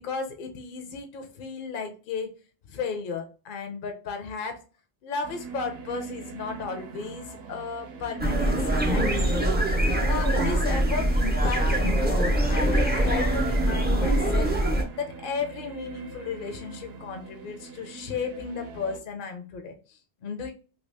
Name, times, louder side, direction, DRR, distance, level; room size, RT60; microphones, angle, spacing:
voice 1, 0.0-2.3 2.7-4.6 5.0-8.6 8.9-14.6 15.0-20.5, left 5 dB, 60° left, 5 dB, 0.7 m, -34 dB
sound 1, 5.2-19.0, right 3 dB, 75° right, 0.8 m, -39 dB
sound 2, 8.2-14.8, right 1 dB, 15° right, 0.4 m, -23 dB
2.8 x 2.8 x 3.2 m, 0.35 s
omnidirectional pair, 1.1 m